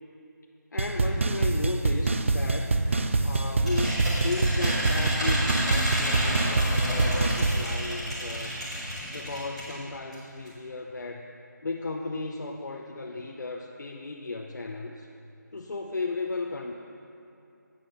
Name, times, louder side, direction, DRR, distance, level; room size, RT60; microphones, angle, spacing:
voice 1, 0.7-2.8 3.2-4.0 4.2-8.6 9.1-11.3 11.6-15.1 15.5-16.7, left 3 dB, 70° left, 1 dB, 0.6 m, -35 dB
sound 1, 0.8-7.6, right 3 dB, 40° right, 0.4 m, -25 dB
sound 2, 2.9-9.8 10.1-10.2 10.4-10.5, equal, 5° right, 0.9 m, -31 dB
9.0 x 5.9 x 6.6 m, 2.7 s
figure-of-eight pair, 175°, 10 cm